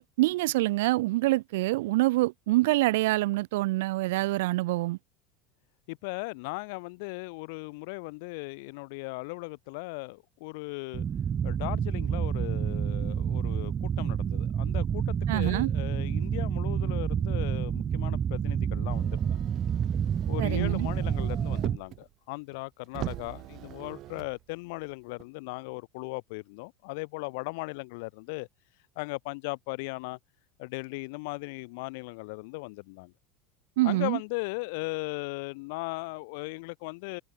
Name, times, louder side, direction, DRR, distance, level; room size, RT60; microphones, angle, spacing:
voice 1, 0.0-5.0 15.3-15.7 20.4-20.9 33.8-34.2, right 19 dB, 80° right, 1.5 m, -26 dB
voice 2, 5.9-11.1 11.4-19.4 20.3-28.5 29.0-30.2 30.6-33.1 33.8-37.2, left 28 dB, 65° left, 5.5 m, -37 dB
sound 1, 10.9-21.8, right 8 dB, 25° right, 0.7 m, -29 dB
Motor vehicle (road), 18.9-22.0 22.5-22.6 22.9-24.3 25.2-25.3, right 15 dB, 40° right, 2.8 m, -39 dB
supercardioid pair, 150°, 0 cm